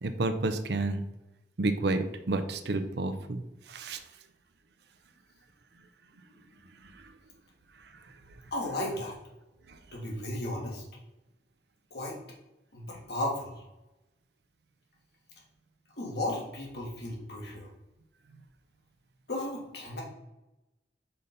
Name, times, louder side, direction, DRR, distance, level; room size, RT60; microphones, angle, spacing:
voice 1, 0.0-1.0 1.6-3.4 3.7-4.0 9.7-9.8, right 2 dB, 65° right, 9 dB, 0.6 m, -30 dB
voice 2, 8.5-9.1 9.9-10.8 11.9-12.2 12.7-13.5 16.0-17.7 19.3-20.0, left 1 dB, 65° left, -3 dB, 1.9 m, -34 dB
5.5 x 4.1 x 5.1 m, 0.97 s
head